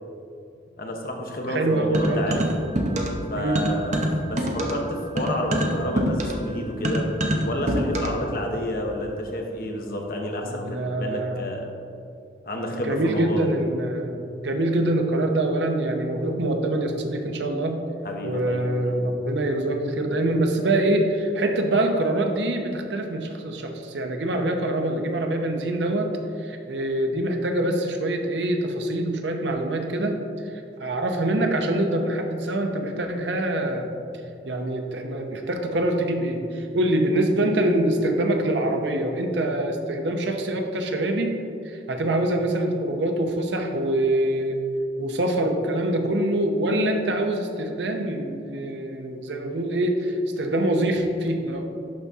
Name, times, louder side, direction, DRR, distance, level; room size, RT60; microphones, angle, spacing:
voice 1, 0.8-2.4 3.3-7.1 7.4-11.7 12.4-13.5 18.0-18.9, left 1 dB, 55° left, 1 dB, 1.0 m, -30 dB
voice 2, 1.5-2.3 3.4-3.6 10.4-11.5 12.7-17.8 18.2-26.1 26.4-30.2 30.8-33.9 34.4-41.3 41.6-44.6 45.0-51.6, right 1 dB, 80° right, 4 dB, 0.8 m, -25 dB
sound 1, 1.9-3.3 3.5-8.3, equal, 40° right, 0.7 m, -25 dB
11.5 x 4.2 x 3.6 m, 2.5 s
head